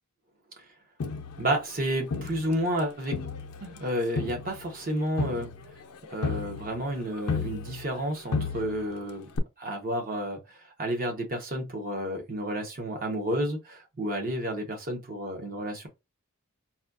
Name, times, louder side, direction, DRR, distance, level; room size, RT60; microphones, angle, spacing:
Crowd, 1.0-2.8 3.1-8.0 8.3-9.0 9.4-9.5, left 4 dB, 90° left, 0.5 m, -34 dB
voice 1, 1.4-3.3 3.6-5.5 6.1-9.3 9.6-10.4 10.8-15.9, right 1 dB, 40° right, 1.0 m, -31 dB
4.1 x 2.3 x 2.5 m
head